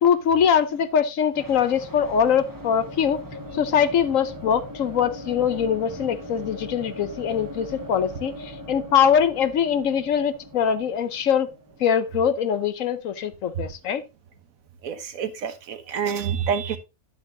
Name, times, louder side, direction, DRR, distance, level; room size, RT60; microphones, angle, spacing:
voice 1, 0.0-3.2 3.5-11.5 11.8-14.0, left 8 dB, 70° left, 1.1 m, -22 dB
sound 1, 1.3-13.1, equal, 15° right, 1.0 m, -39 dB
voice 2, 14.8-16.8, right 7 dB, 70° right, 1.4 m, -27 dB
10.5 x 8.1 x 2.6 m
omnidirectional pair, 1.5 m